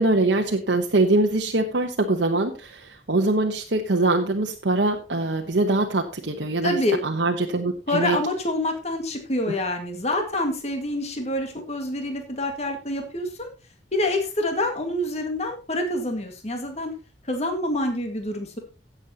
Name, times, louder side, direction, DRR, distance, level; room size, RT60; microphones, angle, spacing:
voice 1, 0.0-6.8 7.0-8.2, right 2 dB, 80° right, 1 dB, 1.0 m, -23 dB
voice 2, 6.6-7.0 7.9-13.5 13.9-16.9 17.2-18.6, left 1 dB, 35° left, 4 dB, 2.0 m, -26 dB
16.5 x 7.3 x 2.9 m, 0.32 s
head